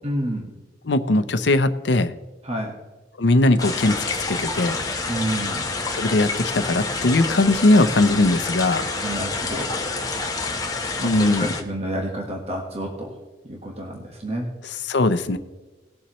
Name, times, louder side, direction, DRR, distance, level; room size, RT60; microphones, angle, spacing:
voice 1, 0.0-0.5 2.4-2.7 5.1-5.6 9.0-9.8 11.0-13.2 13.5-14.5, right 1 dB, 35° right, 0 dB, 1.5 m, -29 dB
voice 2, 0.8-2.1 3.2-4.8 5.9-8.9 11.0-11.5 14.6-15.4, left 2 dB, 75° left, 11 dB, 0.7 m, -20 dB
sound 1, 3.6-11.6, left 3 dB, 20° left, 1.1 m, -28 dB
19.5 x 7.2 x 3.1 m, 1.2 s
head